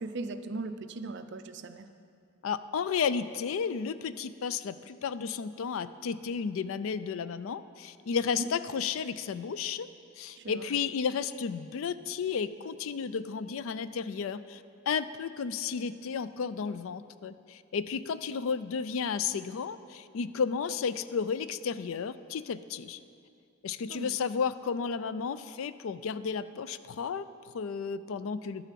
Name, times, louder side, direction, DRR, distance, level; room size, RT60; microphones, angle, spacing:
voice 1, 0.0-1.9 8.4-8.5 10.3-10.7 23.9-24.2, right 3 dB, 55° right, 9 dB, 0.5 m, -38 dB
voice 2, 2.4-9.9 10.2-23.0 23.6-28.7, left 6 dB, 70° left, 14 dB, 0.4 m, -33 dB
11.0 x 6.8 x 7.5 m, 2.4 s
head